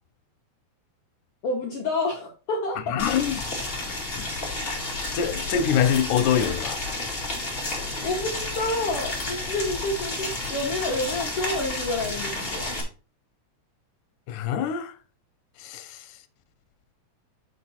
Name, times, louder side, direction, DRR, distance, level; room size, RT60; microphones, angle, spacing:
voice 1, 1.4-3.0 8.0-12.8, left 2 dB, 60° left, 1.8 m, -29 dB
voice 2, 2.9-3.4 4.1-4.3 5.1-6.8 14.3-14.9 15.6-16.0, left 8 dB, 90° left, 2.3 m, -24 dB
Boiling, 3.0-12.8, left 2 dB, 20° left, 1.9 m, -31 dB
6.3 x 5.7 x 4.1 m
omnidirectional pair, 3.5 m